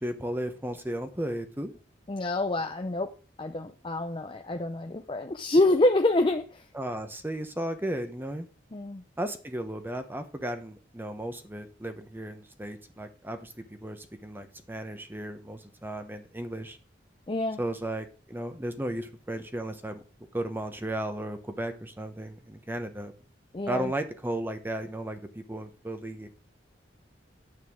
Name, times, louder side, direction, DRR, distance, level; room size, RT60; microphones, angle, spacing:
voice 1, 0.0-1.7 6.7-8.5 9.2-16.8 17.6-20.0 20.3-23.1 23.7-26.3, right 1 dB, 10° right, 8 dB, 0.9 m, -35 dB
voice 2, 2.1-3.1 3.4-6.7 8.7-9.0 17.3-17.6 23.5-23.9, left 2 dB, 30° left, 6 dB, 0.6 m, -26 dB
9.6 x 8.2 x 3.6 m, 0.36 s
head